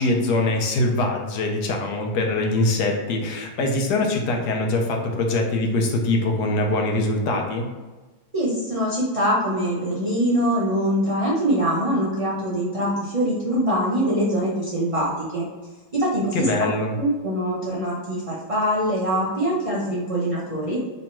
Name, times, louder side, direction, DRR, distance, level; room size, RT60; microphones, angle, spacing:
voice 1, 0.0-7.7 16.3-17.0, left 2 dB, 75° left, 2 dB, 1.3 m, -23 dB
voice 2, 8.3-15.4 15.9-16.5 17.0-20.8, equal, 35° right, -7 dB, 0.6 m, -23 dB
3.4 x 3.0 x 4.3 m, 1.2 s
omnidirectional pair, 1.8 m